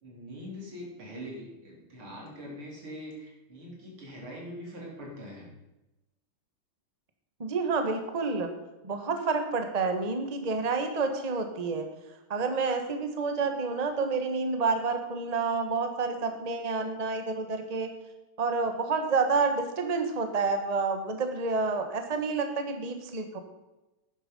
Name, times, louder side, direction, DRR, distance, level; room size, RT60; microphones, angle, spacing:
voice 1, 0.0-5.5, equal, 85° right, -3 dB, 4.7 m, -43 dB
voice 2, 7.4-8.5 8.8-11.9 12.3-17.9 18.4-23.4, right 4 dB, 25° right, 6 dB, 1.2 m, -29 dB
12.0 x 9.8 x 5.5 m, 1.0 s
omnidirectional pair, 2.3 m